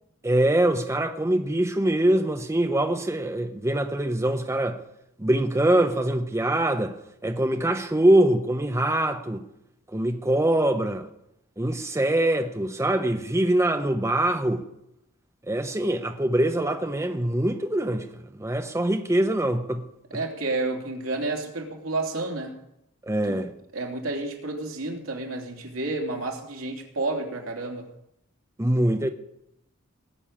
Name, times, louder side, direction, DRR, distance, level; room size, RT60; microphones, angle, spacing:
voice 1, 0.2-4.8 5.2-6.9 7.2-9.4 9.9-11.1 11.6-14.6 15.5-19.8 23.0-23.5 28.6-29.1, right 1 dB, 15° right, 0.7 m, -23 dB
voice 2, 20.1-22.5 23.3-23.4 23.7-27.9, right 2 dB, 75° right, 3.0 m, -30 dB
19.5 x 6.8 x 8.7 m
head